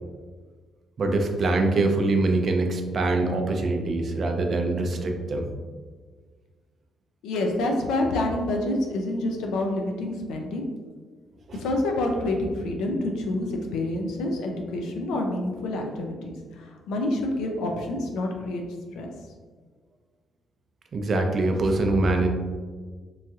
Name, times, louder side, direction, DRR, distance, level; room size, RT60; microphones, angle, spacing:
voice 1, 1.0-5.5 11.5-11.6 20.9-22.3, right 2 dB, 45° right, 4 dB, 0.4 m, -24 dB
voice 2, 7.2-10.6 11.6-18.6 18.9-19.1, left 1 dB, 85° left, 2 dB, 0.5 m, -27 dB
3.1 x 2.6 x 2.3 m, 1.5 s
cardioid pair, 90°, 0 cm